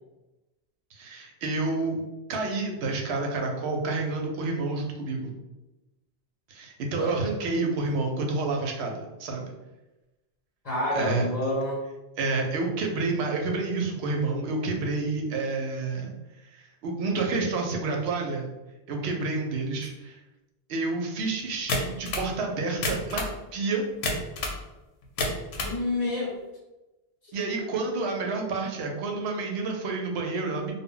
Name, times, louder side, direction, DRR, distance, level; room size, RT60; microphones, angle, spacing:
voice 1, 0.9-2.0 2.3-5.3 6.5-9.4 11.0-11.3 12.2-16.1 16.5-18.5 18.9-20.2 20.7-23.2 23.5-23.8 27.3-30.7, right 3 dB, 85° right, 1 dB, 0.8 m, -29 dB
voice 2, 10.6-11.8 25.6-26.4 27.2-27.3 27.8-27.9, left 1 dB, 45° left, -6 dB, 0.7 m, -29 dB
sound 1, 21.7-22.3 22.7-23.4 24.0-24.6 25.0-25.8, left 2 dB, 90° left, 0.8 m, -29 dB
2.1 x 2.0 x 3.6 m, 1.0 s
omnidirectional pair, 1.0 m